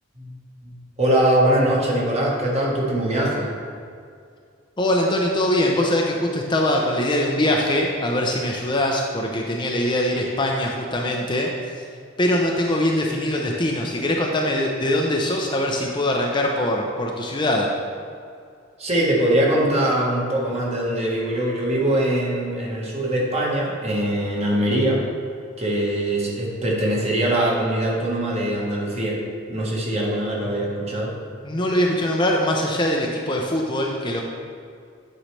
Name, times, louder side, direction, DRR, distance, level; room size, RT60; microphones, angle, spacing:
voice 1, 0.6-3.5 18.8-25.0 25.6-29.2 29.5-31.1, right 1 dB, 30° right, -4 dB, 1.3 m, -22 dB
voice 2, 4.8-11.8 12.2-17.7 31.4-34.2, left 1 dB, 25° left, 0 dB, 0.6 m, -22 dB
8.9 x 5.5 x 3.2 m, 2.3 s
head